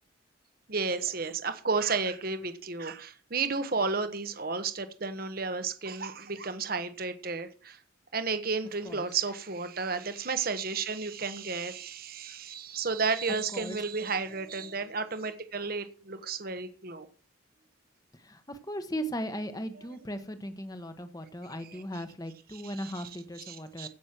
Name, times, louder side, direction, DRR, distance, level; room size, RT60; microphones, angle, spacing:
voice 1, 0.7-7.8 8.1-17.1 21.7-21.8 22.5-23.0 23.5-23.9, right 4 dB, 50° right, 10 dB, 1.2 m, -32 dB
voice 2, 18.2-23.9, equal, 20° left, 9 dB, 1.1 m, -37 dB
16.0 x 6.2 x 6.0 m, 0.39 s
head